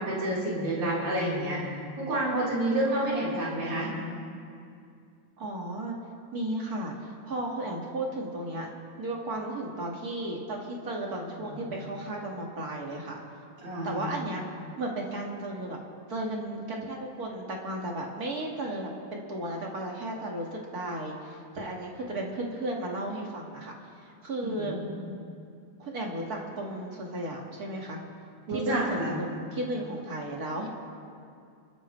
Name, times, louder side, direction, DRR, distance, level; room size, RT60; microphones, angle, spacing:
voice 1, 0.0-1.6 2.0-3.9 11.3-11.7 13.6-14.1 24.4-24.9 28.5-29.2, right 1 dB, 55° right, -7 dB, 5.2 m, -29 dB
voice 2, 5.4-6.0 6.3-8.7 9.0-13.2 13.8-14.5 14.8-15.8 16.1-23.7 24.0-24.7 25.8-28.0 28.5-30.7, right 1 dB, 35° right, -1 dB, 1.9 m, -34 dB
28.5 x 13.5 x 3.3 m, 2.4 s
omnidirectional pair, 3.6 m